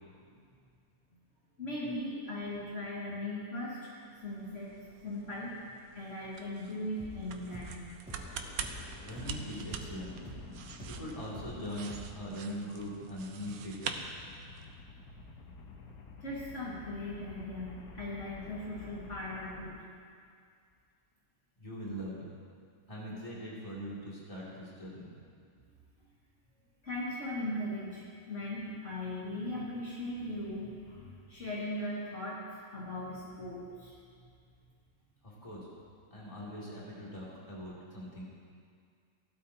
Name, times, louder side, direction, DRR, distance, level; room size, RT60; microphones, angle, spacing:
voice 1, 1.6-3.9 4.2-4.7 5.0-7.9 16.2-19.8 26.8-32.4 32.7-33.9, left 1 dB, 55° left, -8 dB, 2.4 m, -39 dB
sound 1, 4.0-14.8, right 6 dB, 85° right, 1.2 m, -45 dB
sound 2, 7.0-11.6 11.9-12.1, right 1 dB, 5° right, 2.9 m, -47 dB
sound 3, 8.1-19.8, left 3 dB, 85° left, 1.5 m, -51 dB
voice 2, 9.0-10.1 10.8-13.9 21.6-22.2 22.9-25.1 35.2-35.7 36.1-38.2, equal, 20° left, -7 dB, 2.8 m, -41 dB
16.5 x 12.5 x 2.9 m, 2.2 s
omnidirectional pair, 1.5 m